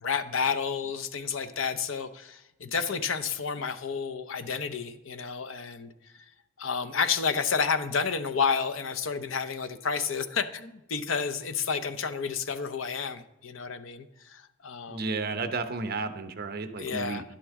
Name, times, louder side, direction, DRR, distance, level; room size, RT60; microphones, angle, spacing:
voice 1, 0.0-5.9 6.6-15.1 16.8-17.2, left 5 dB, 75° left, 10 dB, 0.7 m, -30 dB
voice 2, 14.9-17.2, right 3 dB, 50° right, 9 dB, 0.8 m, -32 dB
11.5 x 10.0 x 3.6 m, 0.92 s
head